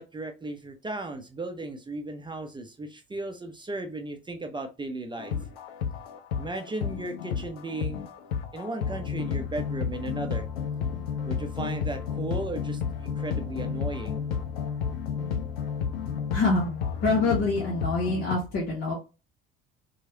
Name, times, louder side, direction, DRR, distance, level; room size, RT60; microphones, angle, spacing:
voice 1, 0.0-5.3 6.4-8.1 8.5-10.5 11.2-14.2, right 2 dB, 15° right, 4 dB, 0.6 m, -36 dB
sound 1, 5.2-18.3, left 7 dB, 80° left, 0.5 m, -32 dB
voice 2, 16.3-16.7 17.0-18.9, left 3 dB, 55° left, -4 dB, 1.1 m, -25 dB
3.0 x 2.3 x 2.8 m, 0.29 s
figure-of-eight pair, 55°, 29 cm